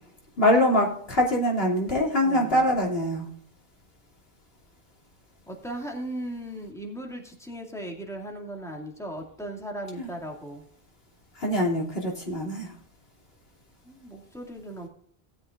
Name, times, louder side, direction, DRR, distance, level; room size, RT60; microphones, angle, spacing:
voice 1, 0.4-3.3 10.0-10.1 11.3-12.7, left 1 dB, 60° left, -1 dB, 3.1 m, -23 dB
voice 2, 2.2-2.6 5.5-10.6 13.8-14.9, right 1 dB, 5° left, 0 dB, 2.4 m, -37 dB
18.5 x 8.3 x 2.5 m, 0.62 s
omnidirectional pair, 1.1 m